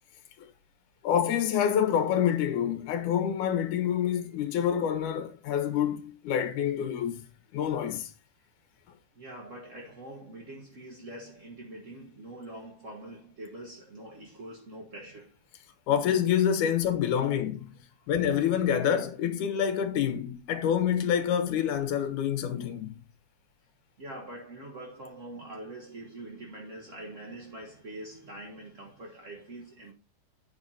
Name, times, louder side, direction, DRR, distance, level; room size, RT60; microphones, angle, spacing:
voice 1, 1.0-7.2 7.5-8.1 15.9-17.7 18.1-23.0, left 9 dB, 80° left, 2.6 m, -27 dB
voice 2, 9.1-15.3 18.0-18.1 24.0-29.9, right 1 dB, 45° right, 0.9 m, -44 dB
9.6 x 5.1 x 4.2 m
omnidirectional pair, 3.5 m